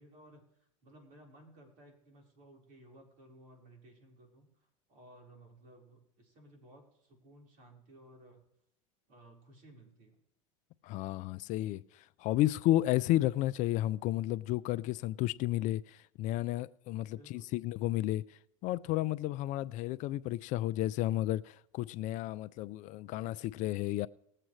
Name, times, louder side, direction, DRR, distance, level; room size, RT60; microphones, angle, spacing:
voice 1, 0.0-4.5 4.9-8.4 9.1-10.2 17.1-17.5, right 1 dB, 55° right, 4.3 m, -58 dB
voice 2, 10.8-18.2 18.6-24.1, left 15 dB, 50° left, 0.4 m, -32 dB
20.0 x 7.7 x 3.2 m
hypercardioid pair, 95°, 17 cm